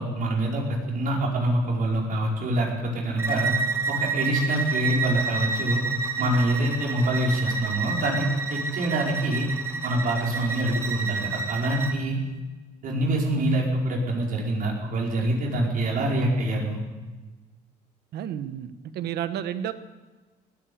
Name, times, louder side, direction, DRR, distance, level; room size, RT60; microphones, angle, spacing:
voice 1, 0.0-3.5 3.9-5.8 6.2-9.5 9.8-12.2 12.8-16.8, right 1 dB, 55° right, -2 dB, 5.0 m, -25 dB
Bowed string instrument, 3.2-12.0, right 4 dB, 15° right, 1.9 m, -29 dB
voice 2, 18.1-19.7, right 10 dB, 70° right, 11 dB, 1.1 m, -31 dB
18.5 x 9.0 x 8.6 m, 1.3 s
cardioid pair, 110°, 17 cm